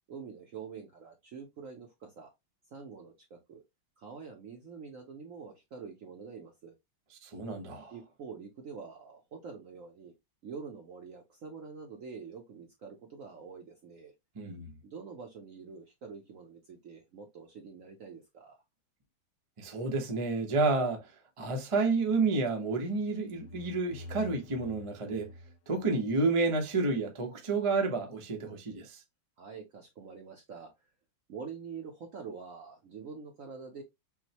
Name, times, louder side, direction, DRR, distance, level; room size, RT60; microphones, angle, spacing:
voice 1, 0.1-2.3 2.7-3.6 4.0-6.7 7.9-10.1 10.4-14.1 14.8-18.6 28.8-28.9 29.4-30.9 31.3-33.8, right 5 dB, 65° right, 0.8 m, -46 dB
voice 2, 7.2-7.9 14.4-14.7 19.6-21.1 21.4-25.3 25.7-29.0, right 3 dB, 50° right, 0.3 m, -30 dB
sound 1, 23.0-26.6, left 1 dB, 70° left, 0.9 m, -48 dB
6.1 x 2.1 x 2.8 m
omnidirectional pair, 2.2 m